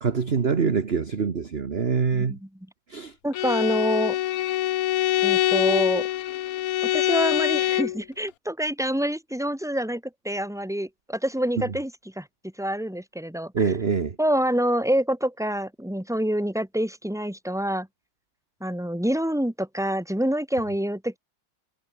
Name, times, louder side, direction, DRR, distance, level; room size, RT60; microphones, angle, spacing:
voice 1, 0.0-2.3 2.9-3.1 13.5-14.1, right 5 dB, 35° right, 1.4 m, -24 dB
voice 2, 2.1-2.5 3.2-4.2 5.2-6.1 6.8-12.3 12.6-13.5 14.2-17.9 18.6-21.2, right 1 dB, ahead, 3.5 m, -26 dB
Bowed string instrument, 3.3-8.0, left 14 dB, 90° left, 0.7 m, -24 dB
omnidirectional pair, 2.2 m